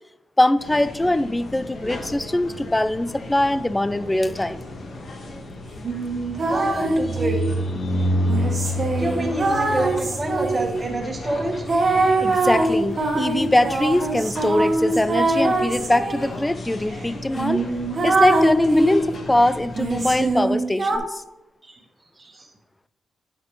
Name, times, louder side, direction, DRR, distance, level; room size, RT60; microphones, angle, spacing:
voice 1, 0.4-4.6 12.2-17.6 18.0-21.2, left 1 dB, 15° left, 14 dB, 0.4 m, -22 dB
sound 1, 0.6-20.3, left 1 dB, 55° left, 1.5 m, -31 dB
sound 2, 5.8-7.6 8.3-10.8 11.7-16.3 16.9-17.0 17.4-19.1 19.7-21.0, right 2 dB, 50° right, 1.5 m, -23 dB
voice 2, 6.5-7.4 9.0-11.7 21.7-21.8 22.2-22.5, right 1 dB, 30° right, 0 dB, 1.7 m, -27 dB
9.3 x 6.7 x 3.2 m, 0.97 s
supercardioid pair, 55°, 0 cm